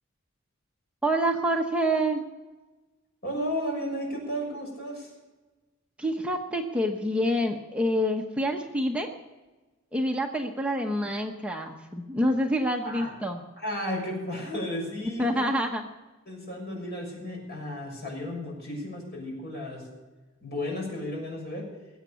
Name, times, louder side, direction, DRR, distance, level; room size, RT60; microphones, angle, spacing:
voice 1, 1.0-2.2 6.0-9.1 9.9-13.4 15.2-15.9, equal, 5° right, 2 dB, 1.0 m, -27 dB
voice 2, 3.2-5.1 12.8-13.1 13.6-15.6 16.3-19.9 20.4-21.7, left 1 dB, 55° left, 0 dB, 6.6 m, -33 dB
20.5 x 8.2 x 7.0 m, 1.2 s
head